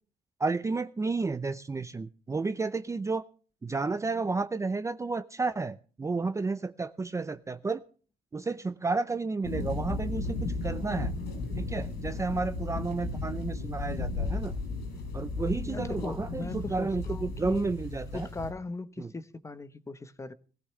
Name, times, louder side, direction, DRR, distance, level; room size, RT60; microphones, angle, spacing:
voice 1, 0.4-3.2 3.6-7.8 8.3-11.1 11.6-14.5 15.1-18.3 19.0-19.1, right 3 dB, 15° right, 0.6 m, -32 dB
sound 1, 9.4-18.5, left 3 dB, 75° left, 7.4 m, -34 dB
voice 2, 15.7-17.6 18.1-20.3, left 3 dB, 15° left, 1.0 m, -39 dB
19.5 x 15.0 x 3.3 m
cardioid pair, 110°, 17 cm